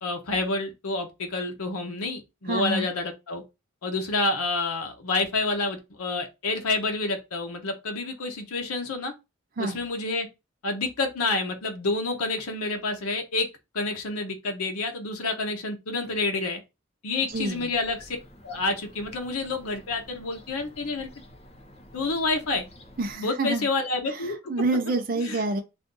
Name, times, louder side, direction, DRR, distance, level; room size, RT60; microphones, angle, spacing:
voice 1, 0.0-3.4 3.8-9.1 9.6-10.3 10.6-13.5 13.7-16.6 17.0-18.2 18.4-21.1 21.9-22.6 23.2-24.4 25.2-25.4, left 3 dB, 90° left, 0.7 m, -28 dB
voice 2, 2.5-2.9 9.6-9.8 17.3-17.7 23.0-23.7 24.1-25.6, right 2 dB, 40° right, 0.5 m, -28 dB
Fowl / Gull seagull, 17.3-23.2, left 1 dB, 30° left, 0.6 m, -50 dB
2.6 x 2.4 x 3.7 m
head